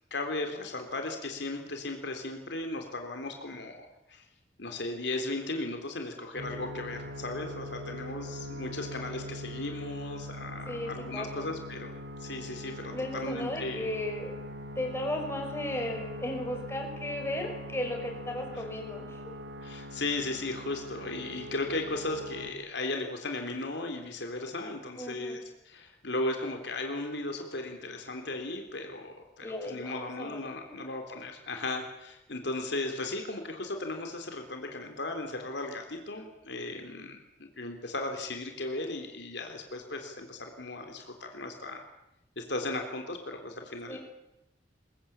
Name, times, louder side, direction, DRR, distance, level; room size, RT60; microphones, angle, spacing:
voice 1, 0.1-4.2 4.6-13.9 18.5-18.7 19.6-41.8 42.4-44.0, left 2 dB, 70° left, 4 dB, 3.5 m, -36 dB
sound 1, 6.4-22.5, equal, 80° right, 3.1 m, -42 dB
voice 2, 10.7-11.5 12.9-14.4 14.8-19.2 25.0-25.4 29.4-30.4 30.7-30.8 43.9-44.0, left 1 dB, 15° left, 2 dB, 5.5 m, -35 dB
22.0 x 22.0 x 8.7 m, 0.89 s
head